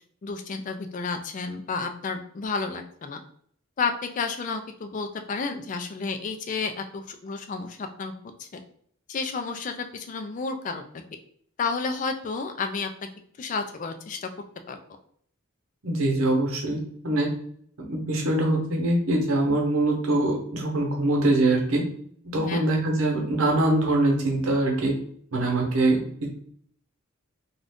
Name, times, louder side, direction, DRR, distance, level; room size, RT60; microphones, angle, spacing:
voice 1, 0.2-3.2 3.8-8.1 8.4-8.6 9.1-10.9 11.6-12.9 13.4-14.3 14.7-14.8 22.4-22.7, left 4 dB, 40° left, 7 dB, 0.3 m, -31 dB
voice 2, 15.8-17.3 17.8-21.8 22.2-24.9 25.3-26.3, right 2 dB, 90° right, 0 dB, 0.9 m, -23 dB
2.5 x 2.3 x 3.4 m, 0.63 s
head